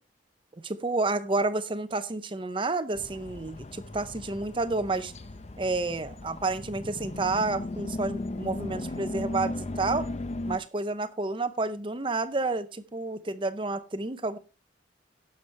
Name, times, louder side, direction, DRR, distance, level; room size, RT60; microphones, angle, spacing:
voice 1, 0.6-5.1 5.6-10.1 10.5-14.4, right 3 dB, 25° right, 0.6 m, -30 dB
sound 1, 2.9-10.6, left 2 dB, 35° left, 0.6 m, -36 dB
17.0 x 7.0 x 3.3 m
head